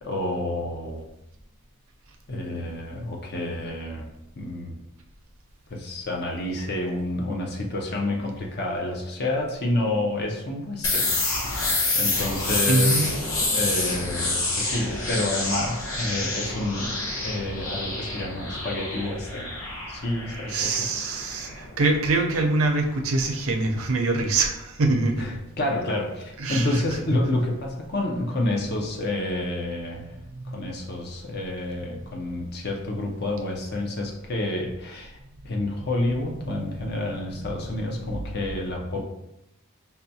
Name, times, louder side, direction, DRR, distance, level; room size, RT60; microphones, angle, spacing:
voice 1, 0.0-1.0 2.3-4.1 4.4-4.8 5.7-11.1 11.4-11.6 11.9-17.0 17.2-19.5 19.9-20.9 25.2-30.1 30.5-35.2 35.4-39.0, left 1 dB, 45° left, 1 dB, 0.5 m, -29 dB
sound 1, 10.8-22.5, left 2 dB, 65° left, 0.9 m, -28 dB
voice 2, 12.7-13.1 20.5-25.2 26.4-26.8 30.2-30.5 36.4-37.4, right 3 dB, 70° right, 3 dB, 0.5 m, -25 dB
5.5 x 2.2 x 2.7 m, 0.86 s
head